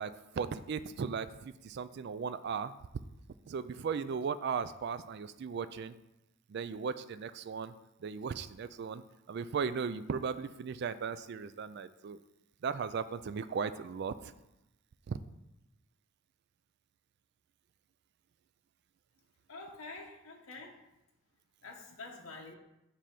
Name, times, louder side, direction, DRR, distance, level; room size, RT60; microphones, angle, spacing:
voice 1, 0.0-2.7 3.5-5.9 6.5-7.7 8.0-9.0 9.3-12.2 12.6-14.3 15.1-15.2, right 6 dB, 50° right, 13 dB, 0.3 m, -37 dB
voice 2, 19.5-20.7 21.6-22.5, left 3 dB, 75° left, 0 dB, 1.0 m, -47 dB
7.4 x 3.4 x 5.8 m, 0.92 s
head